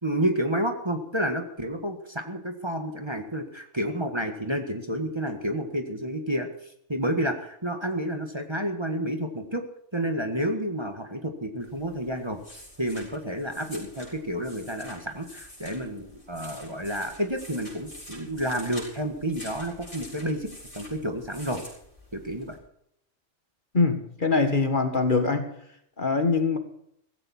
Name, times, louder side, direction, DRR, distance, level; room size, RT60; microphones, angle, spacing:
voice 1, 0.0-6.5 6.9-9.6 9.9-12.4 12.8-20.5 20.7-21.6 22.1-22.6, equal, 20° right, 5 dB, 1.8 m, -30 dB
sound 1, 11.6-22.6, equal, 25° left, 7.1 m, -47 dB
voice 2, 23.7-25.5 26.0-26.6, left 4 dB, 45° left, 7 dB, 1.9 m, -23 dB
16.0 x 15.5 x 4.4 m, 0.71 s
omnidirectional pair, 1.2 m